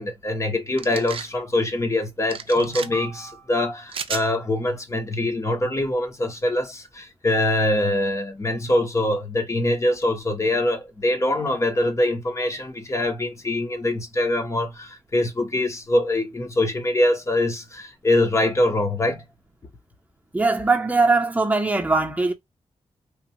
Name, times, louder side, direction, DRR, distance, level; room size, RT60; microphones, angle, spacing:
voice 1, 0.0-19.2, left 1 dB, 30° left, 0.8 m, -23 dB
sound 1, 0.8-1.3 2.3-2.9 3.9-4.3, right 6 dB, 60° right, 0.4 m, -32 dB
voice 2, 20.3-22.3, right 3 dB, 15° right, 0.8 m, -20 dB
3.1 x 2.3 x 2.7 m
wide cardioid pair, 130°, 11 cm